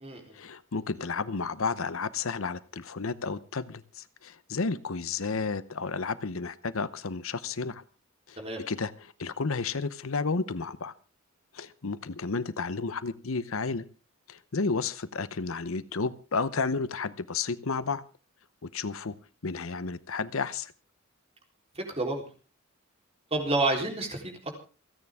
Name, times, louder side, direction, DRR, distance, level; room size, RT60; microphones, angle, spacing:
voice 1, 0.3-7.8 8.3-8.4 8.7-10.9 11.5-13.9 14.3-18.0 18.6-19.2 19.4-20.7, left 4 dB, 70° left, 15 dB, 0.8 m, -32 dB
voice 2, 21.8-22.2 23.3-24.6, right 2 dB, 30° right, 2 dB, 3.7 m, -29 dB
28.5 x 9.5 x 3.6 m, 0.36 s
head